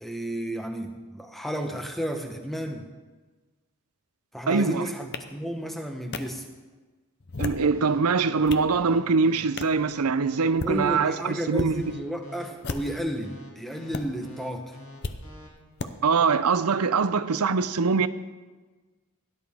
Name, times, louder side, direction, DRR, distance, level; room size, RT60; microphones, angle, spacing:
voice 1, 0.0-2.9 4.3-6.4 10.6-14.8, right 1 dB, ahead, 0.8 m, -32 dB
voice 2, 4.5-4.9 7.4-11.8 16.0-18.1, right 4 dB, 85° right, 0.6 m, -23 dB
sound 1, 5.1-5.2 6.1-6.2 7.2-7.7 8.2-8.7 9.6-9.8 10.4-10.8 11.5-11.7 12.6-13.1 13.9-14.0 15.0-15.2 15.8-15.9, left 3 dB, 50° left, 0.7 m, -33 dB
sound 2, 7.7-15.5, left 3 dB, 65° left, 2.7 m, -47 dB
17.0 x 11.0 x 3.6 m
head